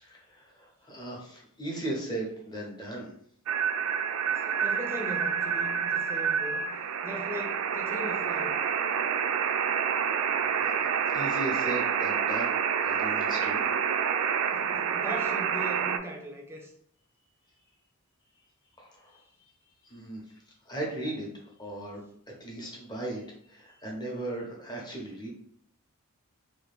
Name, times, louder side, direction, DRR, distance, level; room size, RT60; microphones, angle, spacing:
voice 1, 0.0-3.1 10.5-10.9 11.1-12.5 12.8-13.7 18.8-19.2 19.8-20.2 20.7-21.3 21.6-22.0 22.4-25.3, right 1 dB, 20° left, -2 dB, 0.8 m, -37 dB
sound 1, 3.5-16.0, right 7 dB, 70° right, 0.3 m, -28 dB
voice 2, 4.3-6.6 7.0-8.6 14.5-16.7, equal, 10° right, 1 dB, 0.5 m, -39 dB
2.9 x 2.4 x 3.4 m, 0.68 s
head